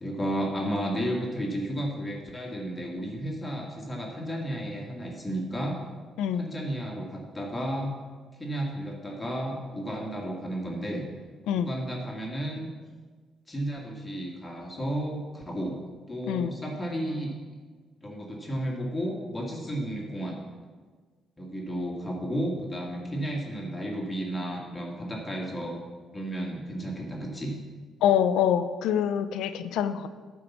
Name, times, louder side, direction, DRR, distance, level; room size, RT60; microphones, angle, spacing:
voice 1, 0.0-5.8 6.3-7.9 8.3-11.0 11.5-12.7 13.5-15.8 16.1-17.3 18.0-20.4 21.4-25.8 26.1-27.5, equal, 20° left, -1 dB, 1.9 m, -33 dB
voice 2, 28.0-30.1, left 9 dB, 90° left, 12 dB, 0.5 m, -25 dB
10.0 x 4.7 x 7.1 m, 1.5 s
cardioid pair, 90°, 0 cm